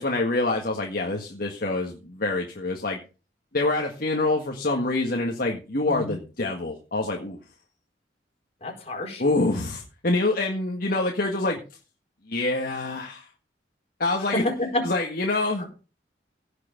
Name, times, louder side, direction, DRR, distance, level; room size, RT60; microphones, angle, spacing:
voice 1, 0.0-3.0 3.5-7.4 9.2-11.6 12.3-13.3 14.0-14.4 14.8-15.6, left 2 dB, 55° left, 1 dB, 1.8 m, -26 dB
voice 2, 8.6-9.2 14.3-14.8 15.6-15.7, left 1 dB, 35° left, 1 dB, 4.5 m, -28 dB
16.5 x 6.9 x 5.1 m, 0.34 s
head